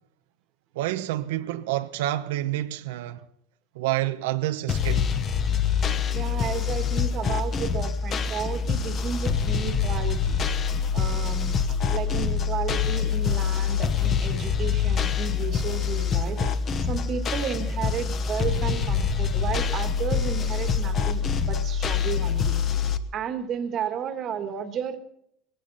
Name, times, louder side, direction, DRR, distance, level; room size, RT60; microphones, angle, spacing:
voice 1, 0.7-3.2 3.7-5.1, right 15 dB, 90° right, 1.0 m, -28 dB
sound 1, 4.7-23.0, left 6 dB, 25° left, 1.0 m, -25 dB
voice 2, 6.1-10.4 10.9-11.6 11.9-16.5 16.8-22.7 23.1-25.0, right 7 dB, 30° right, 1.6 m, -33 dB
20.0 x 16.5 x 4.1 m
cardioid pair, 170°, 0 cm